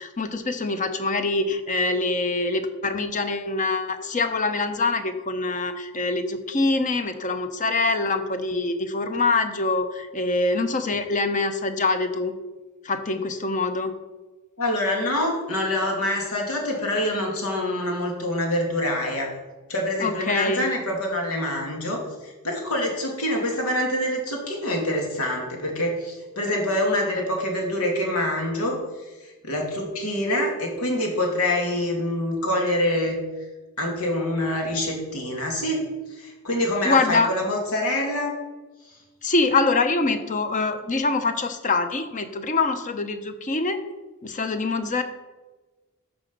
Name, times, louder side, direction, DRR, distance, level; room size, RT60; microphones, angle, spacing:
voice 1, 0.0-12.3 12.8-13.9 20.0-20.7 36.8-37.3 39.2-43.8 44.2-45.0, left 3 dB, 35° left, 8 dB, 0.8 m, -24 dB
voice 2, 14.6-19.3 19.7-28.8 29.2-33.2 33.8-35.8 36.1-38.3, left 1 dB, 90° left, 0 dB, 2.5 m, -26 dB
13.0 x 5.1 x 5.4 m, 1.2 s
head